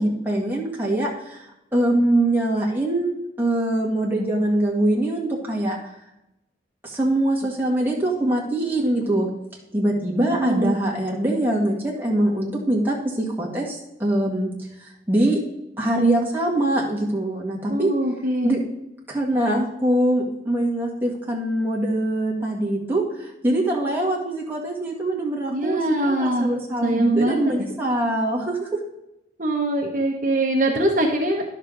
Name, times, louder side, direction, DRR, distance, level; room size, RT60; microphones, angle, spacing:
voice 1, 0.0-1.5 1.7-3.1 3.4-5.8 6.8-9.3 9.7-14.5 14.8-15.4 15.8-17.9 18.4-18.6 19.1-28.7, right 1 dB, 10° right, -3 dB, 1.8 m, -23 dB
voice 2, 10.2-10.7 17.7-18.5 25.5-26.5 26.8-27.4 29.4-31.4, right 1 dB, 45° right, 0 dB, 1.0 m, -22 dB
11.0 x 6.5 x 3.9 m, 0.87 s
head